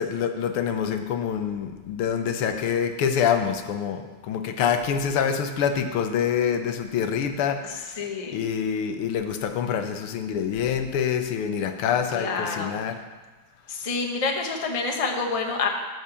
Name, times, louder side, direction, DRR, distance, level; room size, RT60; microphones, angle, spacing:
voice 1, 0.0-8.1 8.3-12.9, left 7 dB, 85° left, 7 dB, 1.8 m, -26 dB
voice 2, 7.6-8.4 12.1-12.8 13.7-15.7, left 4 dB, 25° left, 2 dB, 0.7 m, -28 dB
13.5 x 5.0 x 6.9 m, 1.2 s
omnidirectional pair, 2.3 m